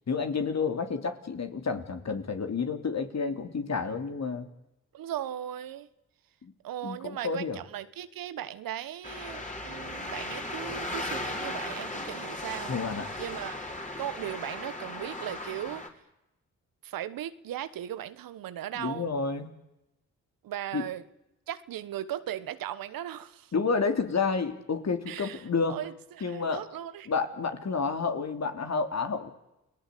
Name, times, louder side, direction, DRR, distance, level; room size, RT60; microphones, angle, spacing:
voice 1, 0.1-4.5 6.4-6.5 6.8-7.6 12.7-13.1 18.7-19.5 20.7-20.8 23.5-25.8 26.2-26.6 27.1-29.3, left 5 dB, 50° left, 7 dB, 3.2 m, -30 dB
voice 2, 4.9-5.9 6.6-12.7 13.2-13.7 14.0-15.9 16.8-19.1 20.4-21.0 21.5-23.5 25.1-27.1, right 11 dB, 75° right, 14 dB, 1.2 m, -37 dB
sound 1, 9.0-15.9, left 2 dB, 20° left, 4.6 m, -37 dB
30.0 x 18.5 x 8.5 m, 0.91 s
supercardioid pair, 40°, 34 cm